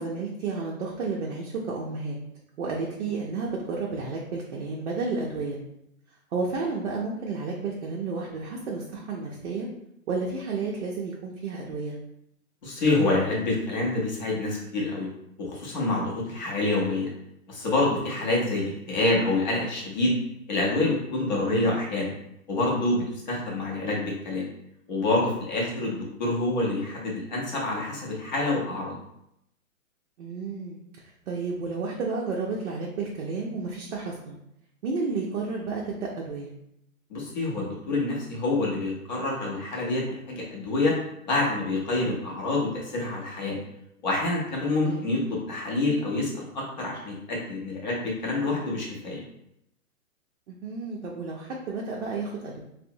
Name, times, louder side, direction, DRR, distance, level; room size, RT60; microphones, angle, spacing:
voice 1, 0.0-2.2 2.6-5.6 6.3-9.7 10.1-12.0 21.3-21.7 30.2-30.8 31.3-34.4 34.8-36.5 44.8-45.1 50.5-52.6, right 4 dB, 55° right, -3 dB, 0.5 m, -31 dB
voice 2, 12.6-15.1 15.4-17.1 17.5-20.1 20.5-22.1 22.5-24.5 24.9-29.0 37.1-40.9 41.2-43.6 44.0-49.2, left 2 dB, 30° left, -3 dB, 0.6 m, -27 dB
2.7 x 2.0 x 2.6 m, 0.79 s
hypercardioid pair, 160°, 43 cm